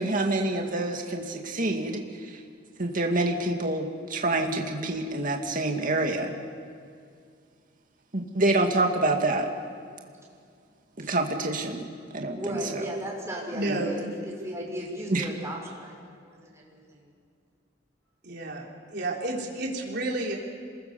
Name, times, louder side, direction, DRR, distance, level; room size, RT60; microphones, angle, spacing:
voice 1, 0.0-2.4 2.8-6.3 8.1-9.5 11.0-11.9 12.1-12.8 13.7-13.8 15.1-15.3, right 2 dB, 45° right, 3 dB, 2.2 m, -27 dB
voice 2, 12.3-15.9 16.2-17.0, equal, 15° right, -2 dB, 5.9 m, -36 dB
voice 3, 13.5-14.1 18.2-20.3, right 2 dB, 60° right, -1 dB, 4.1 m, -31 dB
27.5 x 21.5 x 7.0 m, 2.3 s
head